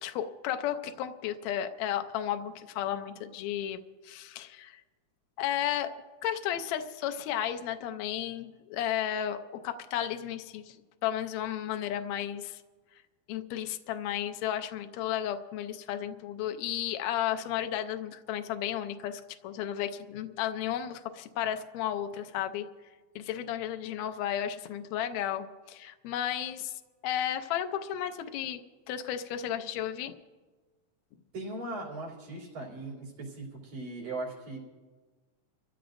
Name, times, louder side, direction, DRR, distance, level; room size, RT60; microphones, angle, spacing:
voice 1, 0.0-4.8 5.4-5.9 6.2-12.6 13.3-22.7 23.2-26.7 27.0-28.6 28.9-30.1, left 10 dB, 75° left, 7 dB, 1.9 m, -33 dB
voice 2, 31.3-34.6, right 2 dB, 75° right, -5 dB, 4.4 m, -39 dB
26.0 x 15.0 x 2.6 m, 1.3 s
omnidirectional pair, 3.4 m